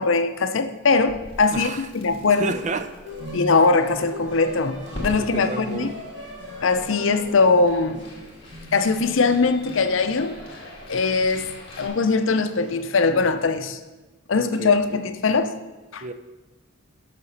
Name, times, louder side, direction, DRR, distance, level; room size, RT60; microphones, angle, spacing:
voice 1, 0.0-2.5 3.3-5.9 6.6-8.0 8.7-10.4 10.9-11.5 11.8-13.8 14.3-15.5 15.9-16.0, left 4 dB, 70° left, 9 dB, 0.6 m, -21 dB
Crackle, 1.1-11.9, left 1 dB, 25° left, 1.8 m, -43 dB
voice 2, 1.5-1.9 2.3-2.9 5.2-5.9 14.4-15.0 16.0-16.1, right 3 dB, 35° right, 10 dB, 0.5 m, -31 dB
sound 1, 3.0-13.3, left 1 dB, 60° right, 3.0 m, -39 dB
7.0 x 5.8 x 6.5 m, 1.2 s
head